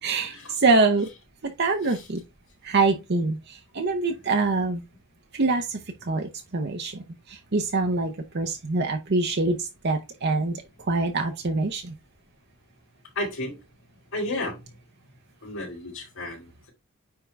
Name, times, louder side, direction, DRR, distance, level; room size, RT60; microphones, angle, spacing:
voice 1, 0.0-1.1 1.4-2.2 2.6-4.8 5.3-11.9, right 3 dB, 50° right, 0.8 m, -25 dB
voice 2, 13.1-13.6 14.1-14.6 15.4-16.7, left 1 dB, 65° left, 4.0 m, -32 dB
9.5 x 3.8 x 3.4 m
head